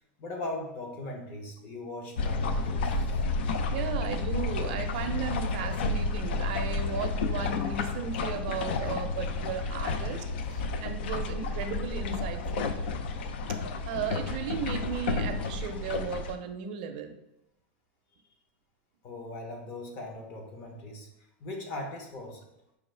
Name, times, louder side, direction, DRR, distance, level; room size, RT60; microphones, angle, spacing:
voice 1, 0.2-3.2 19.0-21.1 21.4-22.5, left 2 dB, 35° left, 2 dB, 0.7 m, -39 dB
sound 1, 2.2-16.3, left 3 dB, 75° left, 0.4 m, -31 dB
voice 2, 3.7-12.7 13.9-17.2, right 6 dB, 50° right, 6 dB, 0.5 m, -35 dB
5.0 x 2.4 x 3.2 m, 0.88 s
supercardioid pair, 165°, 6 cm